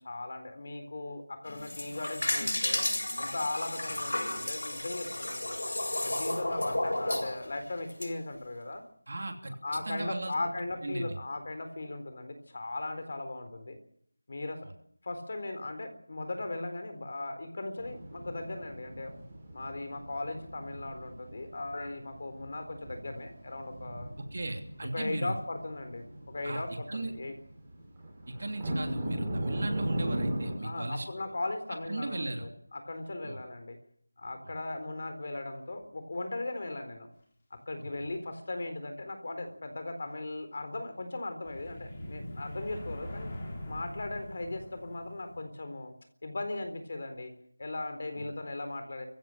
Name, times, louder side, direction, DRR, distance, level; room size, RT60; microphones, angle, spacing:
voice 1, 0.0-2.9 3.2-5.6 6.0-8.8 9.6-13.8 14.3-14.6 15.0-19.1 19.5-24.2 24.9-27.3 30.6-33.8 34.2-37.1 37.7-43.3 43.7-45.9 46.2-47.3 47.6-49.1, left 2 dB, 40° left, 7 dB, 4.0 m, -38 dB
sound 1, 1.5-8.1, left 1 dB, 80° left, 7.8 m, -32 dB
voice 2, 9.1-9.5 9.9-10.3 10.8-11.2 14.6-14.7 24.3-25.3 26.4-26.6 26.9-27.1 28.3-31.0 31.9-32.5 33.2-33.4 48.2-48.3, right 2 dB, 45° right, 4 dB, 3.1 m, -36 dB
sound 2, 17.8-30.6, right 1 dB, 10° right, 4.7 m, -38 dB
sound 3, 41.4-45.4, left 1 dB, 15° left, 4.0 m, -42 dB
24.0 x 16.0 x 7.5 m, 0.64 s
figure-of-eight pair, 175°, 0 cm